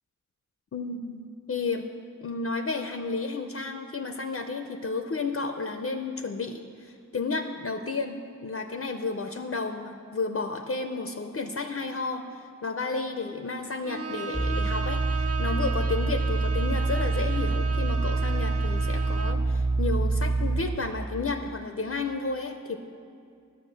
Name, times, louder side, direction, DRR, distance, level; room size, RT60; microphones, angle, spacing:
voice 1, 0.7-1.9 2.2-22.8, left 3 dB, 45° left, 6 dB, 0.5 m, -32 dB
Bowed string instrument, 13.8-19.5, right 5 dB, 50° right, 0.5 m, -36 dB
sound 1, 14.3-20.6, right 3 dB, 15° right, 0.8 m, -26 dB
9.8 x 7.1 x 6.2 m, 2.5 s
wide cardioid pair, 60°, 32 cm